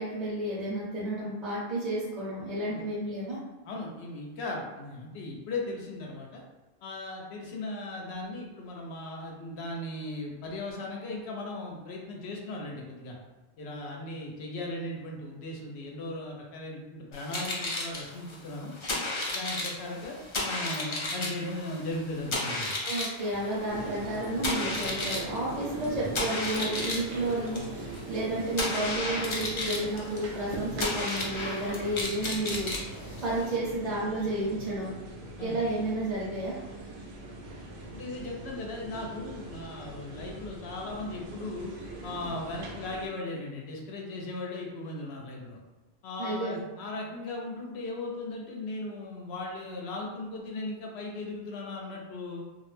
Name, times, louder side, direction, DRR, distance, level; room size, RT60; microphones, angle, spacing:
voice 1, 0.0-3.4 22.8-32.7 33.2-34.9 35.4-36.6 46.2-46.6, right 1 dB, 45° right, -8 dB, 0.7 m, -31 dB
voice 2, 3.6-6.4 6.8-13.2 13.6-18.7 19.3-22.7 35.4-35.6 37.9-41.7 42.0-45.6 46.0-52.4, left 2 dB, 85° left, -1 dB, 0.8 m, -37 dB
sound 1, 17.1-33.6, left 2 dB, 45° left, 0.4 m, -34 dB
sound 2, 23.7-43.1, right 2 dB, 80° right, 0.8 m, -41 dB
2.4 x 2.0 x 3.0 m, 1.1 s
omnidirectional pair, 1.1 m